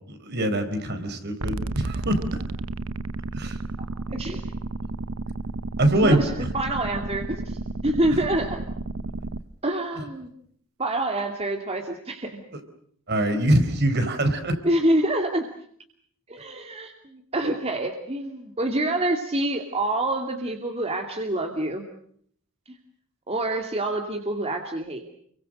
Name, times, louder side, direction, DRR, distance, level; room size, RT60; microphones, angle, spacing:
voice 1, 0.1-2.4 3.3-3.6 5.8-6.2 10.0-10.1 12.5-12.6 13.1-14.6, right 1 dB, 55° right, 8 dB, 4.6 m, -23 dB
sound 1, 1.4-9.4, right 2 dB, 90° right, 1.0 m, -32 dB
voice 2, 4.1-4.4 6.0-8.6 9.6-10.3 10.8-12.4 13.3-13.5 14.6-15.5 16.3-21.8 23.3-25.0, right 1 dB, 30° right, 4 dB, 2.6 m, -27 dB
30.0 x 24.0 x 6.5 m, 0.63 s
head